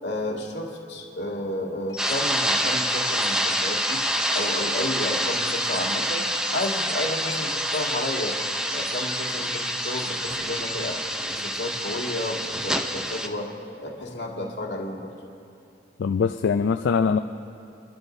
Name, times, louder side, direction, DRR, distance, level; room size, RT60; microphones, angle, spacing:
voice 1, 0.0-4.0 4.3-6.2 6.5-8.4 8.7-11.0 11.3-13.5 13.8-15.1, left 1 dB, 70° left, -2 dB, 2.0 m, -31 dB
sound 1, 1.9-11.0, left 4 dB, 20° left, 3.2 m, -41 dB
sound 2, 2.0-13.3, equal, 5° right, 0.5 m, -27 dB
voice 2, 16.0-17.2, left 5 dB, 90° left, 8 dB, 0.4 m, -22 dB
27.0 x 12.0 x 2.6 m, 2.5 s
head